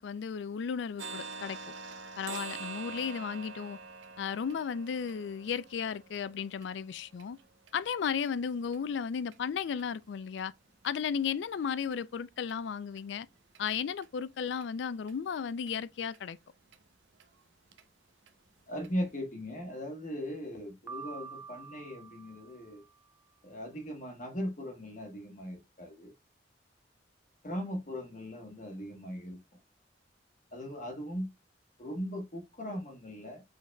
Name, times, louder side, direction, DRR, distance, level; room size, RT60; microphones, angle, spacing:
voice 1, 0.0-1.6 2.2-3.8 4.2-7.4 7.7-10.5 10.8-13.3 13.6-16.4, left 7 dB, 75° left, 0.3 m, -34 dB
sound 1, 1.0-8.8 9.2-9.4 9.8-9.9 10.4-10.5 10.8-10.9 11.4-11.5 11.9-12.0 12.5-12.6 13.0-13.1 13.6-13.7 14.0-14.1 14.6-14.7 15.1-15.2 15.7-15.8 16.1-16.2 16.7-16.8 17.2-17.3 17.7-17.8 18.3-18.4 18.8-18.9, right 5 dB, 85° right, 0.7 m, -46 dB
voice 2, 18.7-22.8 23.4-26.1 27.4-29.4 30.5-31.3 31.8-33.4, equal, 45° left, 1.1 m, -39 dB
Piano, 20.9-23.0, right 5 dB, 15° right, 0.3 m, -47 dB
5.1 x 3.9 x 2.2 m
head